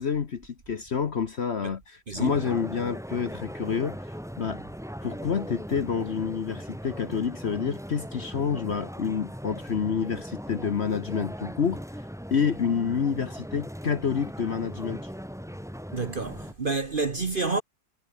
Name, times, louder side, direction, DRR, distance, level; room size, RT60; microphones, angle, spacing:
voice 1, 0.0-4.1 4.4-4.6 5.0-12.0 12.3-15.0, left 6 dB, 45° left, 1.0 m, -28 dB
sound 1, 2.2-16.5, equal, ahead, 5.4 m, -39 dB
voice 2, 15.9-17.6, right 4 dB, 35° right, 1.0 m, -28 dB
omnidirectional pair, 1.9 m